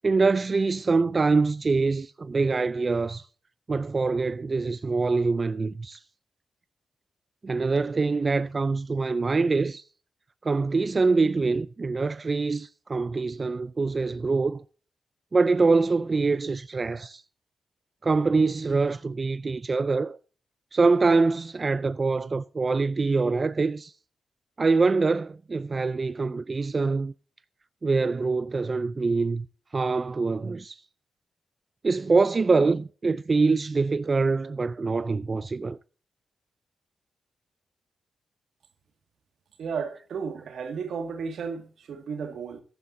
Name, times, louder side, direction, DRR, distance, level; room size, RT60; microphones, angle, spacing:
voice 1, 0.0-3.3 3.7-6.0 7.4-9.8 10.4-14.6 15.3-17.2 18.0-20.2 20.7-23.9 24.6-27.1 27.8-29.5 29.7-30.8 31.8-35.8, right 4 dB, 40° right, 0.4 m, -24 dB
voice 2, 39.6-42.6, right 6 dB, 80° right, 1.9 m, -33 dB
14.5 x 11.5 x 2.6 m
cardioid pair, 75°, 0 cm